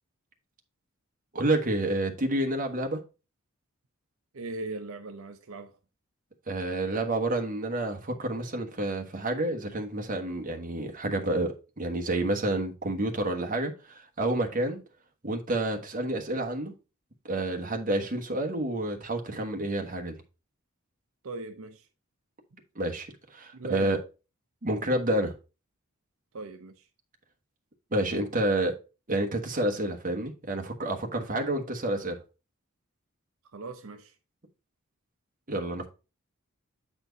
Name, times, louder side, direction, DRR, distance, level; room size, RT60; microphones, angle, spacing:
voice 1, 1.3-3.0 6.5-14.8 15.2-16.7 17.2-20.1 22.7-24.0 24.6-25.3 27.9-28.7 29.1-32.2 35.5-35.9, right 1 dB, 40° right, 1.1 m, -29 dB
voice 2, 4.3-5.8 21.2-21.9 23.5-24.0 26.3-26.9 33.5-34.1, right 3 dB, 75° right, 0.7 m, -39 dB
8.1 x 4.4 x 3.9 m
head